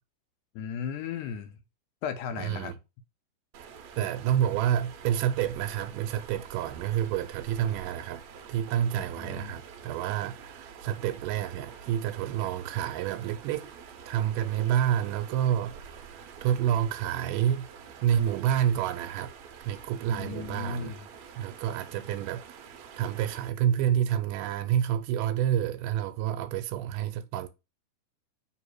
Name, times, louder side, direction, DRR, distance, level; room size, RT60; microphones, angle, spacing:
voice 1, 0.6-1.6 2.0-2.7 8.9-9.5 20.1-21.1, left 7 dB, 75° left, 2.0 m, -36 dB
voice 2, 2.3-2.7 4.0-8.2 8.5-13.7 14.1-17.7 18.0-19.3 19.6-20.9 21.4-27.5, right 10 dB, 85° right, 2.2 m, -29 dB
sound 1, 3.5-23.5, right 7 dB, 70° right, 1.8 m, -47 dB
6.9 x 3.1 x 4.6 m
omnidirectional pair, 3.7 m